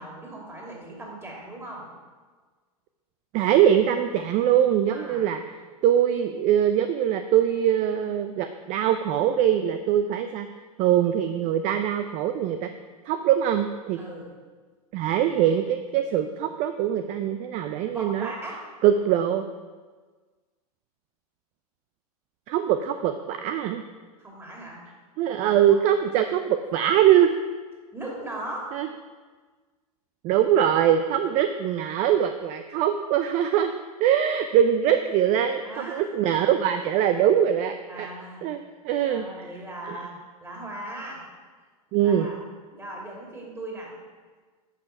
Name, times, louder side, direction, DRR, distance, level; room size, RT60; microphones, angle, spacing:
voice 1, 0.0-1.9 4.9-5.4 14.0-14.3 17.9-18.6 24.2-24.8 25.7-25.8 27.9-28.7 35.6-36.3 37.9-38.6 39.1-40.1 40.4-41.2 42.0-42.4 42.7-43.9, right 1 dB, 10° right, -2 dB, 2.7 m, -38 dB
voice 2, 3.3-5.4 5.8-10.5 10.8-12.7 13.1-14.0 14.9-18.3 18.8-19.4 22.5-23.8 25.2-27.3 28.7-28.9 30.2-33.7 34.0-38.1 38.4-38.6 38.8-39.3 39.9-40.0 41.9-42.3, right 10 dB, 40° right, 8 dB, 0.5 m, -22 dB
10.5 x 5.4 x 5.9 m, 1.4 s
hypercardioid pair, 110°, 20 cm